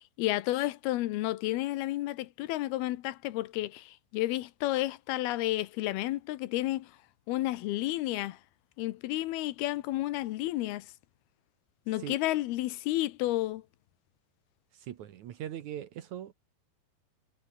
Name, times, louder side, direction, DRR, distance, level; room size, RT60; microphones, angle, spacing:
voice 1, 0.0-6.9 7.3-8.4 8.8-10.9 11.9-13.6, left 16 dB, 85° left, 2.9 m, -31 dB
voice 2, 14.7-16.3, right 11 dB, 65° right, 2.2 m, -40 dB
omnidirectional pair, 4.4 m